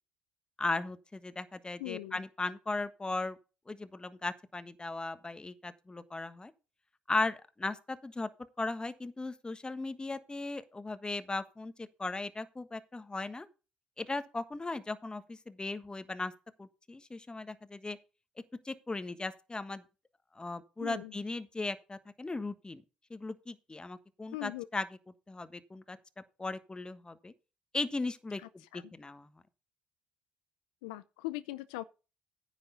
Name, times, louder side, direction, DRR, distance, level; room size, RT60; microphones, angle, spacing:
voice 1, 0.6-3.4 3.7-6.5 7.1-8.3 8.6-13.5 14.0-16.3 16.6-18.0 18.6-19.8 20.3-22.8 23.1-24.8 25.3-26.0 26.4-27.3 27.7-28.4 28.7-29.3, left 3 dB, 20° left, 1.4 m, -37 dB
voice 2, 1.8-2.2 20.8-21.1 24.3-24.7 28.6-28.9 30.8-31.8, left 18 dB, 85° left, 0.5 m, -40 dB
9.9 x 6.4 x 5.7 m
hypercardioid pair, 60°, 4 cm